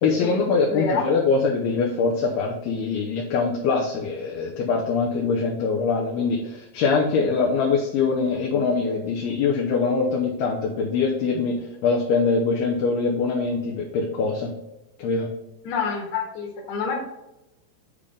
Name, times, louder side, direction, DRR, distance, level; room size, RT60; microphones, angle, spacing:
voice 1, 0.0-14.5 15.0-15.3, left 4 dB, 80° left, -1 dB, 2.3 m, -23 dB
voice 2, 0.7-1.1 8.5-8.7 15.6-17.1, left 5 dB, 65° left, -1 dB, 3.0 m, -27 dB
10.5 x 3.5 x 5.1 m, 0.94 s
omnidirectional pair, 5.8 m